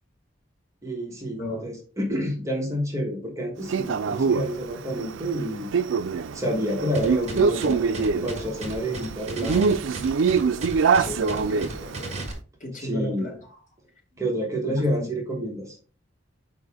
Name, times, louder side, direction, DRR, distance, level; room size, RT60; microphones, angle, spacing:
voice 1, 0.8-5.7 6.3-9.7 12.8-13.3 14.2-15.7, equal, 15° right, 1 dB, 1.2 m, -29 dB
Male speech man speaking, 3.7-12.2, right 5 dB, 80° right, 0.4 m, -25 dB
sound 1, 6.9-12.3, right 2 dB, 35° right, 1.4 m, -35 dB
voice 2, 11.0-12.3 12.6-13.4 14.7-15.1, left 1 dB, 40° left, -1 dB, 2.2 m, -34 dB
6.4 x 4.8 x 3.5 m, 0.39 s
head